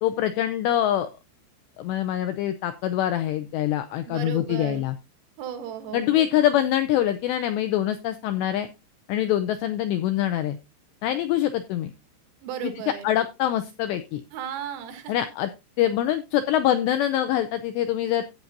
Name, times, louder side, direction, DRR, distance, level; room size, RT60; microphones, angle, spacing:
voice 1, 0.0-1.1 1.8-5.0 5.9-8.7 9.1-10.6 11.0-11.9 12.6-12.7 13.0-14.2 15.1-15.5 15.8-18.2, left 12 dB, 85° left, 9 dB, 2.5 m, -24 dB
voice 2, 4.1-4.9 5.4-6.2 12.4-13.1 14.3-15.2, right 9 dB, 85° right, 6 dB, 4.3 m, -35 dB
14.0 x 8.6 x 2.6 m, 0.26 s
omnidirectional pair, 5.8 m